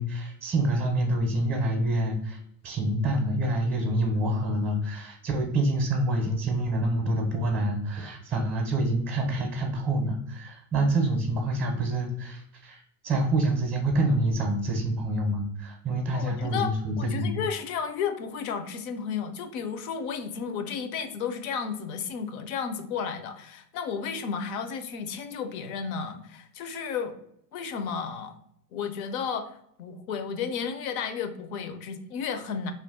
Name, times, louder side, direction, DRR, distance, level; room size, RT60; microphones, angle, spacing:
voice 1, 0.0-17.3, right 1 dB, 20° right, 1 dB, 0.5 m, -27 dB
voice 2, 16.1-27.1 27.5-28.3 28.7-32.7, left 6 dB, 60° left, 9 dB, 0.6 m, -33 dB
2.5 x 2.2 x 3.5 m, 0.74 s
supercardioid pair, 115°, 49 cm